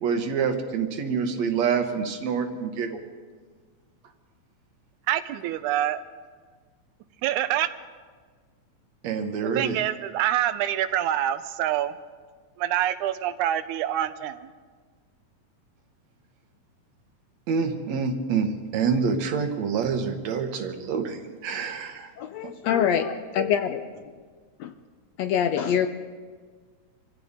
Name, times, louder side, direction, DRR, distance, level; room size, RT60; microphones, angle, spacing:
voice 1, 0.0-3.0 9.0-9.8 17.5-22.1 22.4-22.5, right 6 dB, 65° right, 5 dB, 2.3 m, -27 dB
voice 2, 5.1-6.0 7.2-7.7 9.4-11.9 12.6-14.5, right 12 dB, 85° right, 12 dB, 2.1 m, -26 dB
voice 3, 22.2-23.8 24.6-24.7 25.2-25.9, left 8 dB, 75° left, 8 dB, 1.7 m, -25 dB
26.0 x 15.0 x 3.7 m, 1.5 s
omnidirectional pair, 3.5 m